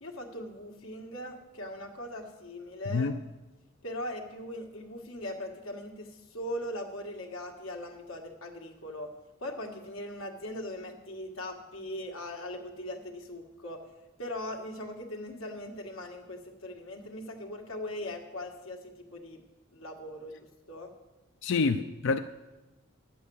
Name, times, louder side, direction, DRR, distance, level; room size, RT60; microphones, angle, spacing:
voice 1, 0.0-3.1 3.8-9.1 9.4-13.8 14.2-19.4 19.7-20.9, left 1 dB, 80° left, 1.6 m, -40 dB
voice 2, 21.4-22.2, left 4 dB, 60° left, 0.4 m, -27 dB
11.0 x 8.4 x 7.0 m
head